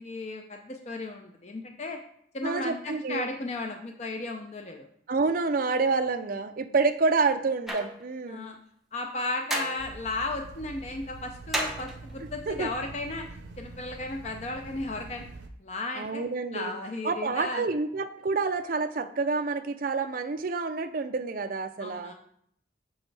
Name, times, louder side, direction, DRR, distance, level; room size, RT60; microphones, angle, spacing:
voice 1, 0.0-2.0 2.3-4.9 8.3-8.6 8.9-13.3 13.6-15.3 15.6-16.2 16.5-17.6 21.8-22.1, left 2 dB, 35° left, 3 dB, 0.5 m, -35 dB
voice 2, 2.4-3.2 5.1-8.5 12.5-12.7 15.9-16.7 17.0-22.1, right 4 dB, 50° right, 8 dB, 0.5 m, -28 dB
sound 1, 7.7-8.0 9.5-9.9 11.5-12.1, right 1 dB, ahead, 0.8 m, -31 dB
sound 2, 9.8-15.5, right 3 dB, 80° right, 0.8 m, -45 dB
7.0 x 6.2 x 3.3 m, 0.67 s
head